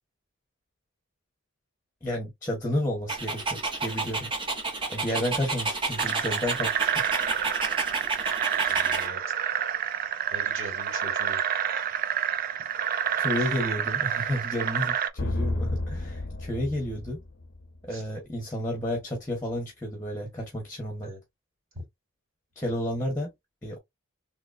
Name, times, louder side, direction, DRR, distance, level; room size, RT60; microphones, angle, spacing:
voice 1, 2.0-4.3 4.9-6.9 13.2-17.2 17.8-21.1 22.5-23.3 23.6-23.8, left 1 dB, 10° left, 1.1 m, -31 dB
Dog, 3.1-9.1, right 3 dB, 25° right, 0.8 m, -31 dB
sound 1, 6.0-15.1, right 9 dB, 40° right, 0.4 m, -28 dB
voice 2, 8.7-9.2 10.3-11.8 13.4-13.5 17.9-18.0 21.0-21.2 21.7-21.8, equal, 70° right, 2.0 m, -42 dB
sound 2, 15.2-17.9, left 2 dB, 65° left, 0.6 m, -31 dB
3.8 x 2.9 x 2.4 m
head